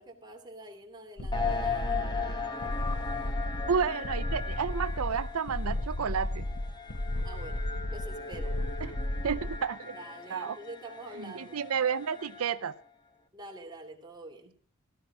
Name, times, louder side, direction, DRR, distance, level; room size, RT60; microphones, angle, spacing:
voice 1, 0.0-2.4 7.2-8.6 9.9-11.6 13.3-14.5, right 2 dB, 20° right, 2.9 m, -47 dB
sound 1, 1.2-9.6, left 1 dB, 85° left, 1.3 m, -34 dB
sound 2, 1.3-12.7, left 5 dB, 20° left, 1.6 m, -38 dB
voice 2, 3.7-6.5 8.8-8.9 9.2-10.0 10.3-10.6 11.2-12.7, right 6 dB, 85° right, 0.6 m, -31 dB
17.0 x 13.0 x 4.8 m
head